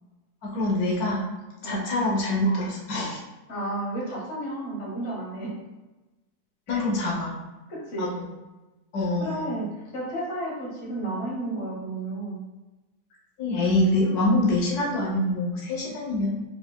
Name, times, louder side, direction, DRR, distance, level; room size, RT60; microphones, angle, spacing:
voice 1, 0.4-1.3 1.6-3.2 6.7-7.3 8.0-8.2 8.9-9.5 13.4-16.4, left 1 dB, 85° left, -3 dB, 1.5 m, -25 dB
voice 2, 3.5-5.5 6.7-6.8 7.7-8.1 9.2-12.4, right 1 dB, 50° left, -3 dB, 1.4 m, -32 dB
4.9 x 4.6 x 2.3 m, 1.1 s
omnidirectional pair, 1.6 m